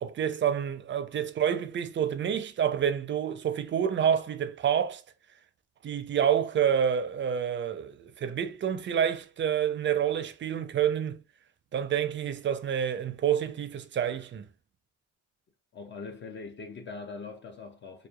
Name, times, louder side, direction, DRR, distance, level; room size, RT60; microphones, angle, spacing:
voice 1, 0.0-5.0 5.8-11.2 11.7-14.5, right 9 dB, 40° right, 0.4 m, -28 dB
voice 2, 15.7-18.1, left 4 dB, 40° left, 0.4 m, -42 dB
2.9 x 2.1 x 2.3 m
cardioid pair, 90°, 30 cm